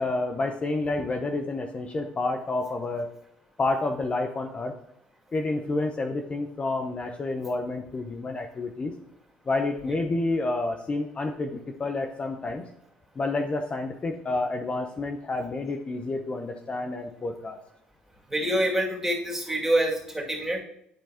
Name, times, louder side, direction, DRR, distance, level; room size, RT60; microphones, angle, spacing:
voice 1, 0.0-3.1 3.6-4.7 5.3-8.9 9.5-12.7 13.2-17.6, left 2 dB, 35° left, 4 dB, 0.7 m, -29 dB
voice 2, 18.3-20.6, right 1 dB, 10° right, -2 dB, 2.4 m, -26 dB
10.5 x 4.4 x 2.9 m, 0.75 s
supercardioid pair, 75°, 4 cm